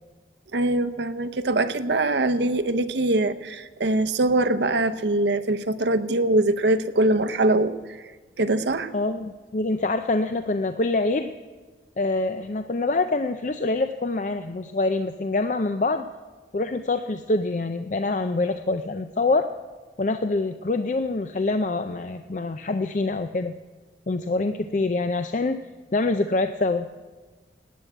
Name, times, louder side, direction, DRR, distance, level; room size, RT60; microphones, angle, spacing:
voice 1, 0.5-7.7 8.4-8.9, right 2 dB, 80° right, 10 dB, 0.8 m, -23 dB
voice 2, 8.9-11.3 12.0-16.1 16.5-19.5 20.0-23.5 24.1-25.6 25.9-26.9, left 3 dB, 45° left, 8 dB, 0.5 m, -25 dB
18.0 x 9.4 x 7.9 m, 1.4 s
head